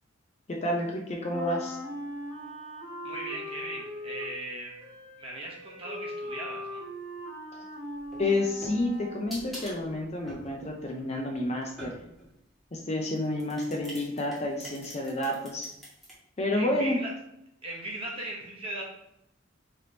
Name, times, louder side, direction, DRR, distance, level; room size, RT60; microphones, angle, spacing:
voice 1, 0.5-1.8 7.5-7.6 8.2-12.0 12.7-15.7 16.4-17.0, left 1 dB, 30° left, 1 dB, 0.5 m, -30 dB
Wind instrument woodwind instrument, 1.3-9.4, left 1 dB, 85° left, 1.5 m, -40 dB
voice 2, 3.0-4.7 5.2-6.9 16.5-17.1 17.6-18.9, right 1 dB, 30° right, -3 dB, 1.0 m, -38 dB
sound 1, 8.0-12.3 13.1-16.1, equal, ahead, 1.1 m, -45 dB
3.3 x 3.0 x 3.8 m, 0.80 s
head